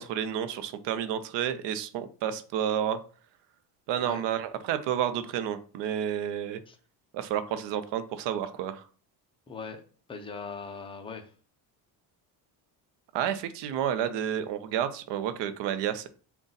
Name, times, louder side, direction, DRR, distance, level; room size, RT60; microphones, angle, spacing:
voice 1, 0.0-3.0 3.9-6.6 7.1-8.8 13.1-16.1, right 9 dB, 75° right, 12 dB, 0.6 m, -30 dB
voice 2, 9.5-11.3, left 5 dB, 15° left, 5 dB, 0.4 m, -40 dB
3.8 x 2.3 x 3.9 m, 0.39 s
cardioid pair, 145°, 42 cm